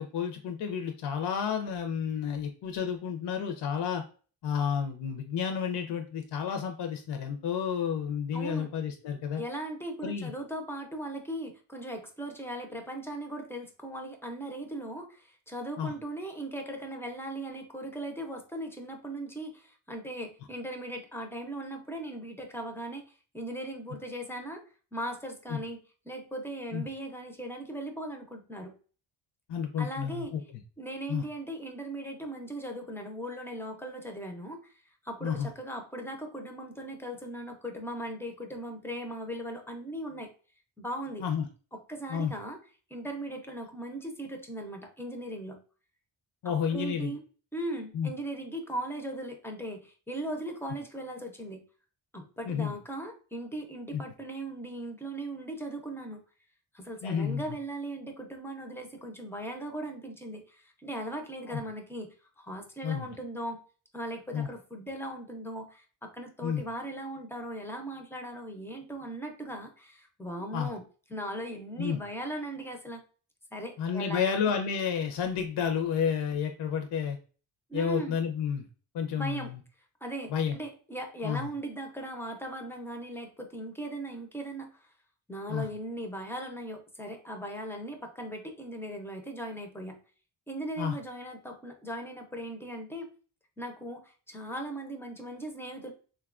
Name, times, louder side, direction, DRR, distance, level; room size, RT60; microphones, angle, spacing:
voice 1, 0.0-4.0 4.4-9.4 10.0-10.3 15.8-15.9 25.5-25.6 26.7-26.8 29.5-30.4 31.1-31.2 35.2-35.5 41.2-41.4 42.1-42.3 46.4-47.1 47.9-48.1 52.5-52.7 53.9-54.0 57.0-57.4 61.5-61.6 62.8-63.1 64.3-64.5 66.4-66.6 70.5-70.7 71.8-72.0 73.8-77.2 77.7-78.6 78.9-79.6 80.3-80.6 81.2-81.5 85.5-85.7 90.8-90.9, left 7 dB, 60° left, 4 dB, 0.5 m, -31 dB
voice 2, 8.3-8.7 9.4-24.6 24.9-28.8 29.8-30.3 30.8-40.3 40.8-41.2 41.7-42.6 42.9-45.6 46.4-47.2 47.5-51.6 52.1-56.2 56.7-63.6 63.9-73.0 73.5-74.6 77.7-78.2 79.2-79.5 80.0-84.9 85.3-90.0 90.5-93.1 93.6-95.9, right 1 dB, 5° left, 4 dB, 0.4 m, -38 dB
3.6 x 2.2 x 2.3 m, 0.38 s
wide cardioid pair, 150°, 47 cm